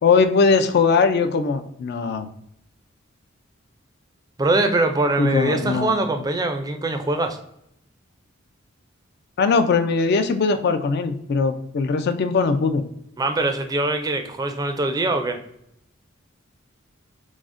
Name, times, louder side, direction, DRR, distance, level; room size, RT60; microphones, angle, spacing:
voice 1, 0.0-2.3 5.2-5.9 9.4-12.8, left 4 dB, 55° left, 10 dB, 0.4 m, -20 dB
voice 2, 4.4-7.4 13.2-15.4, right 2 dB, 20° right, 6 dB, 0.4 m, -22 dB
6.1 x 2.1 x 2.5 m, 0.76 s
head